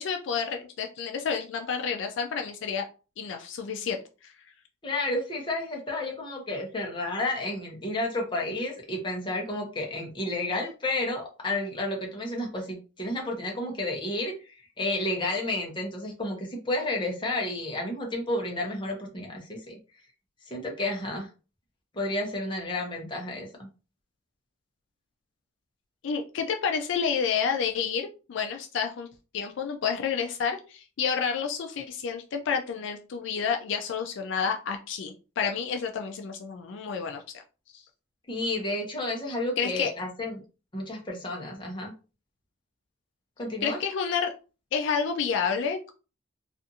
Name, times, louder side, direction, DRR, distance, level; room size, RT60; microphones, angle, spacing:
voice 1, 0.0-2.9 3.2-4.0 26.0-29.1 29.3-37.2 37.7-37.8 39.6-39.9 43.6-44.3 44.7-45.9, left 6 dB, 65° left, 4 dB, 0.3 m, -29 dB
voice 2, 4.8-19.7 20.5-21.3 21.9-23.7 38.3-40.4 40.7-41.9 43.4-43.8, left 2 dB, 25° left, 0 dB, 0.7 m, -31 dB
2.5 x 2.4 x 2.6 m, 0.33 s
head